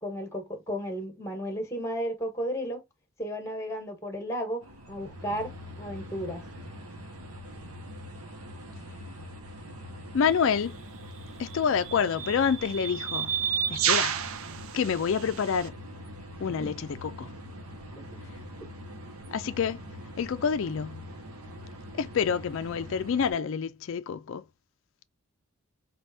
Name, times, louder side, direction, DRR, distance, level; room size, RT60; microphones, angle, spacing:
voice 1, 0.0-2.8 3.2-6.5 16.4-16.8 18.0-18.1, equal, 15° left, 1.2 m, -34 dB
sound 1, 4.6-23.3, equal, 85° right, 1.2 m, -43 dB
voice 2, 10.1-10.7 11.4-13.3 13.7-14.1 14.7-15.7 16.4-17.3 19.3-19.8 20.2-21.1 22.0-24.4, left 6 dB, 60° left, 0.4 m, -27 dB
sound 2, 10.3-10.5 11.5-15.7, right 8 dB, 65° right, 0.6 m, -31 dB
4.1 x 3.5 x 2.6 m
head